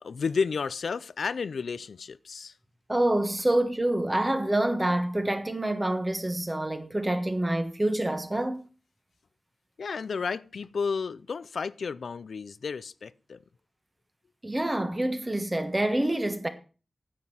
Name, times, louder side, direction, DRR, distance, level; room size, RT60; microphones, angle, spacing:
voice 1, 0.0-2.5 9.8-13.4, left 5 dB, 85° left, 0.4 m, -32 dB
voice 2, 2.9-8.6 14.4-16.5, right 1 dB, 15° right, 1.3 m, -27 dB
9.8 x 7.5 x 5.9 m
wide cardioid pair, 115°, 0 cm